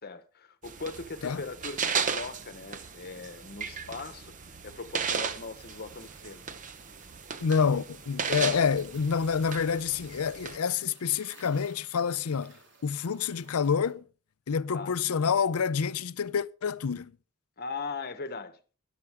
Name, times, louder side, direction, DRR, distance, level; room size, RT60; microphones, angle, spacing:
voice 1, 0.0-6.4 8.4-8.7 14.7-14.9 17.6-18.6, left 4 dB, 45° left, 1.1 m, -40 dB
sound 1, 0.6-10.6, right 6 dB, 35° right, 0.8 m, -36 dB
sound 2, 5.5-13.9, right 4 dB, 55° right, 2.5 m, -58 dB
voice 2, 7.4-12.6 12.8-14.0 14.5-17.1, left 6 dB, 85° left, 0.5 m, -28 dB
13.5 x 11.0 x 3.5 m
head